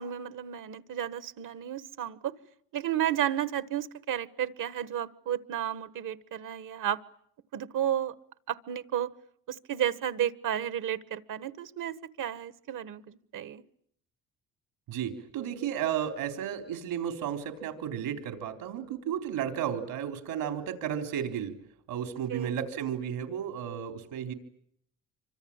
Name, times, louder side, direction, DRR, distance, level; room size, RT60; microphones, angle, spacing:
voice 1, 0.0-2.3 2.7-7.0 7.5-8.1 8.5-9.1 9.5-13.6 22.3-22.6, right 10 dB, 60° right, 15 dB, 1.4 m, -32 dB
voice 2, 14.9-21.5 21.9-24.3, right 9 dB, 80° right, 6 dB, 4.1 m, -33 dB
27.0 x 25.0 x 8.8 m, 0.69 s
supercardioid pair, 80°, 35 cm